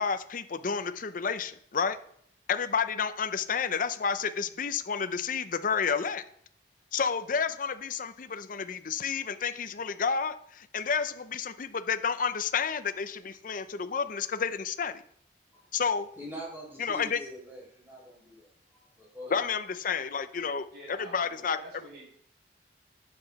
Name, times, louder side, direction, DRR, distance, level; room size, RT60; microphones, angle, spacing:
voice 1, 0.0-2.0 2.5-6.3 6.9-15.0 15.7-16.1 16.8-17.2 19.3-21.6, left 6 dB, 50° left, 11 dB, 0.6 m, -30 dB
voice 2, 16.2-19.4, equal, 10° right, -3 dB, 4.7 m, -44 dB
voice 3, 20.7-22.1, equal, 65° right, -1 dB, 4.9 m, -48 dB
12.0 x 7.9 x 4.1 m, 0.65 s
head